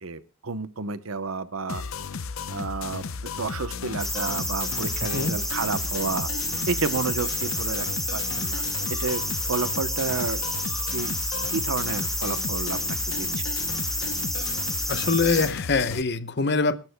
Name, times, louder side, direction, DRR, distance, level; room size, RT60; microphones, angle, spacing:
voice 1, 0.0-1.8 2.5-6.3 6.7-7.9 8.1-8.6 8.9-9.2 9.5-10.4 10.9-11.1 11.5-13.4, right 4 dB, 90° right, 13 dB, 0.9 m, -30 dB
sound 1, 1.7-16.0, left 5 dB, 85° left, 0.7 m, -34 dB
sound 2, 4.0-15.5, equal, ahead, 2.5 m, -30 dB
voice 2, 5.0-5.3 14.9-16.8, left 4 dB, 55° left, 13 dB, 0.8 m, -24 dB
27.0 x 11.5 x 2.2 m, 0.33 s
head